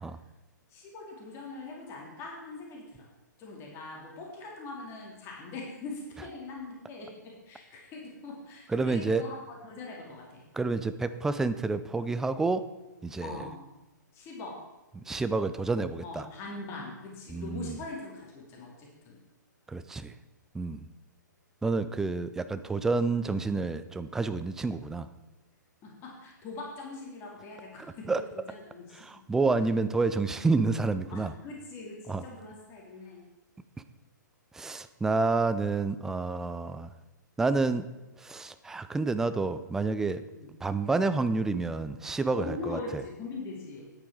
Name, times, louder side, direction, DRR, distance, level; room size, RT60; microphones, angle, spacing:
voice 1, 0.7-3.1 3.4-9.4 9.6-10.4 13.2-13.7 14.1-14.6 16.0-19.2 25.8-28.2 28.5-29.1 31.1-33.2 40.3-40.5 42.3-43.9, left 3 dB, 25° left, -2 dB, 2.6 m, -42 dB
voice 2, 8.7-9.3 10.5-12.6 13.0-13.4 15.0-16.3 17.3-17.8 19.7-20.1 20.5-20.9 21.6-25.1 28.1-28.2 28.9-31.3 32.1-32.2 34.5-36.9 37.4-37.9 38.2-40.2 40.6-43.0, right 3 dB, 5° right, 12 dB, 0.4 m, -29 dB
10.0 x 8.9 x 4.7 m, 1.1 s
figure-of-eight pair, 120°, 10 cm